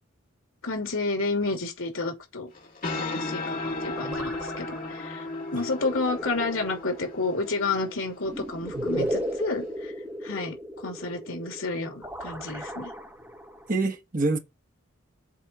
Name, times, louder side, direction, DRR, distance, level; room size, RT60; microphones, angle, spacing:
voice 1, 0.6-2.5 2.9-9.9 10.2-10.6 10.8-12.9, left 3 dB, 75° left, 2.8 m, -30 dB
sound 1, 2.5-9.7, left 2 dB, 40° left, 3.1 m, -36 dB
sound 2, 3.6-13.7, equal, 10° right, 1.6 m, -36 dB
voice 2, 8.7-9.1 13.7-14.4, right 2 dB, 40° right, 1.3 m, -27 dB
7.5 x 4.2 x 6.1 m
head